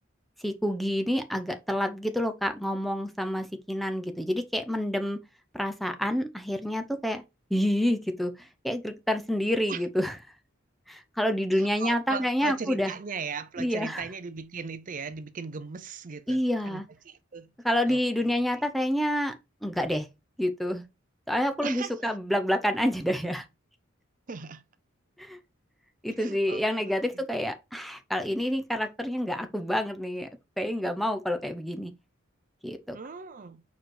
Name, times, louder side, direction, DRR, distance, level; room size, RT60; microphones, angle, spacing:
voice 1, 0.4-5.2 5.5-7.2 7.5-10.1 10.9-12.9 13.6-14.0 16.3-16.9 17.6-19.3 19.6-20.1 20.4-20.8 21.3-23.4 25.2-25.4 26.0-30.3 30.6-31.9 32.6-33.0, equal, ahead, 0.6 m, -28 dB
voice 2, 11.5-17.5 17.9-18.0 18.3-18.6 21.6-22.2 24.3-24.6 26.1-27.2 32.9-33.6, right 5 dB, 40° right, 0.5 m, -38 dB
4.7 x 4.6 x 4.6 m
head